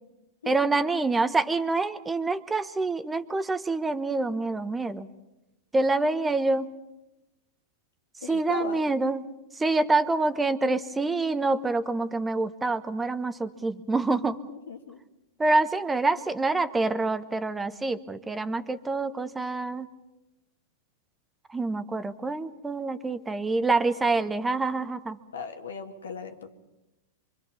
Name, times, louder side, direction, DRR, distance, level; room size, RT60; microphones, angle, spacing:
voice 1, 0.4-5.1 5.7-6.7 8.2-9.2 9.5-14.4 15.4-19.9 21.5-25.2, right 3 dB, 15° right, 12 dB, 1.1 m, -26 dB
voice 2, 8.2-8.8 14.5-15.0 25.3-26.5, left 5 dB, 85° left, 5 dB, 2.1 m, -37 dB
25.0 x 24.5 x 5.6 m, 0.98 s
hypercardioid pair, 105°, 0 cm